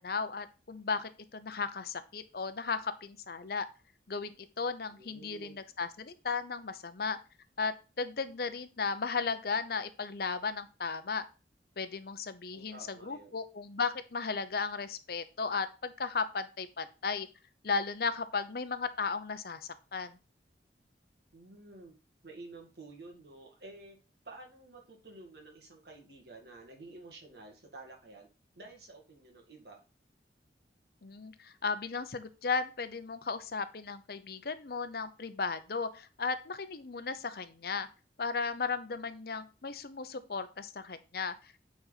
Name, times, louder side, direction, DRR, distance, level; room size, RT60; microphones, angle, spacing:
voice 1, 0.0-3.7 4.1-7.2 7.6-11.2 11.8-17.3 17.6-20.2 31.0-37.9 38.2-41.6, left 4 dB, 60° left, 11 dB, 0.7 m, -35 dB
voice 2, 4.9-5.6 12.5-13.3 21.3-21.9 22.2-24.0 24.2-28.3 28.6-29.8, right 2 dB, 65° right, 1 dB, 2.2 m, -51 dB
8.9 x 4.2 x 4.1 m, 0.32 s
head